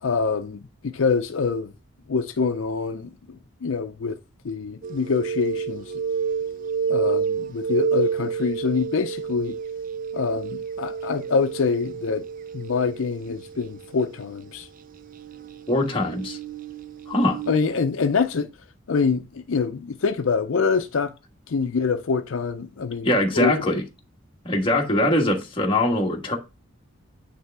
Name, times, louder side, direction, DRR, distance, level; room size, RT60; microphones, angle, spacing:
voice 1, 0.0-1.7 2.1-4.2 4.4-5.8 6.9-9.6 10.1-12.3 12.5-14.7 17.5-18.5 18.9-21.1 21.5-23.5, left 5 dB, 70° left, 0.5 m, -25 dB
sound 1, 4.8-14.3 15.0-17.7, right 6 dB, 40° right, 0.4 m, -30 dB
voice 2, 15.7-16.4 17.1-17.4 23.0-23.8 24.4-26.4, left 1 dB, 25° left, 1.3 m, -22 dB
9.2 x 3.4 x 3.4 m
head